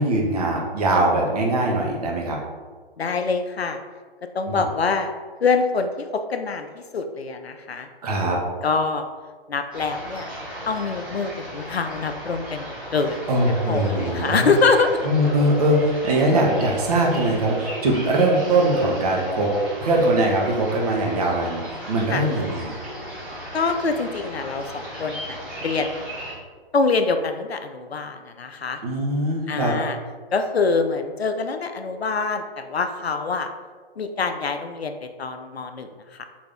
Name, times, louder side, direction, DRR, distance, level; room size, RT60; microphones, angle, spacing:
voice 1, 0.0-2.4 4.5-4.6 8.0-8.4 13.3-14.5 15.0-19.5 19.8-21.6 21.9-22.8 28.8-29.7, right 1 dB, 40° right, -1 dB, 0.8 m, -21 dB
voice 2, 3.0-3.8 4.3-5.1 5.4-7.9 8.6-9.1 9.5-10.3 10.7-13.3 13.7-15.0 22.1-22.2 23.5-26.0 26.7-28.8 29.5-30.0 30.3-33.5 34.0-36.2, left 4 dB, 85° left, 7 dB, 0.5 m, -25 dB
sound 1, 9.7-26.3, equal, 5° right, 0.6 m, -36 dB
3.9 x 2.6 x 3.4 m, 1.5 s
figure-of-eight pair, 130°, 30 cm